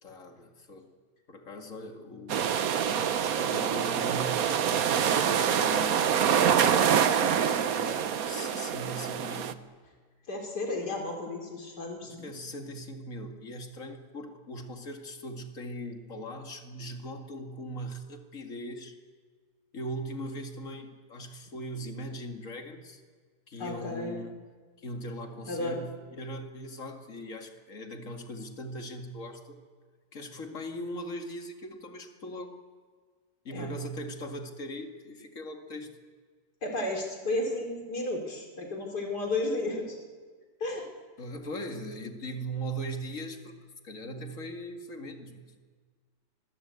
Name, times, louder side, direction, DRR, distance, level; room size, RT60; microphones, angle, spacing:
voice 1, 0.0-0.9 1.3-2.7 3.2-6.4 6.7-9.6 12.0-18.9 19.7-23.0 23.5-24.3 24.8-29.6 30.1-32.6 33.4-35.9 41.2-43.6 43.8-45.5, equal, 50° left, 4 dB, 2.5 m, -40 dB
sound 1, 2.3-9.5, right 8 dB, 60° right, 1.3 m, -26 dB
voice 2, 10.3-12.2 23.6-24.2 25.5-25.8 33.5-33.7 36.6-40.0 40.6-40.9, left 2 dB, 70° left, 2 dB, 4.3 m, -33 dB
26.0 x 22.0 x 8.3 m, 1.5 s
omnidirectional pair, 1.8 m